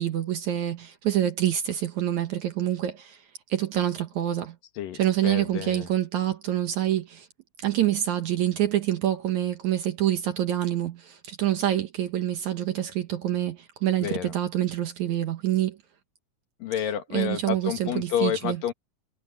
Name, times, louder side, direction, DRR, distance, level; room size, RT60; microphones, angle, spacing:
voice 1, 0.0-3.2 3.5-4.6 4.9-7.3 7.6-15.8 17.1-18.6, right 12 dB, 65° right, 2.4 m, -26 dB
voice 2, 4.8-5.9 14.0-14.3 16.6-18.7, left 9 dB, 75° left, 3.2 m, -29 dB
omnidirectional pair, 4.0 m